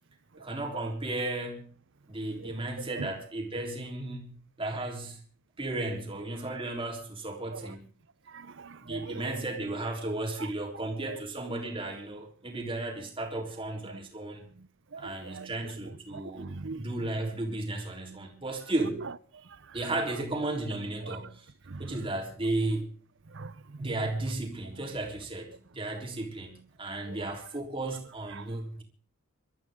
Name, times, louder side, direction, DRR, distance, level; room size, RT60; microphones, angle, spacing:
voice 1, 0.4-1.7 2.1-5.2 5.6-7.8 8.8-14.4 15.0-19.1 19.7-21.5 21.8-22.9 23.8-28.8, right 2 dB, 25° right, 3.6 m, -34 dB
voice 2, 2.2-3.1 7.5-7.7 8.3-9.4 10.4-10.5 11.1-11.2 13.9-14.0 14.6-16.9 19.0-19.8 21.0-21.2 21.7-22.1 23.3-24.1 27.0-27.3 28.3-28.5, right 4 dB, 55° right, 0.7 m, -43 dB
27.0 x 13.0 x 3.7 m
head